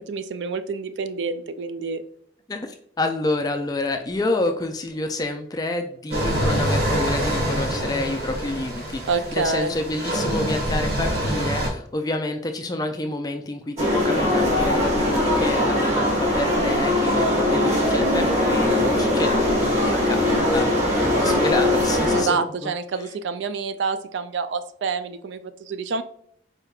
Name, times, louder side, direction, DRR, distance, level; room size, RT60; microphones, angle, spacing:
voice 1, 0.0-2.0 9.1-9.7 22.1-26.0, right 4 dB, 75° right, 11 dB, 0.4 m, -27 dB
voice 2, 2.5-22.7, left 2 dB, 20° left, 6 dB, 0.4 m, -28 dB
sound 1, 6.1-11.7, equal, 55° right, 1.4 m, -25 dB
sound 2, 13.8-22.2, left 1 dB, 35° right, 1.3 m, -21 dB
4.4 x 3.3 x 2.3 m, 0.67 s
head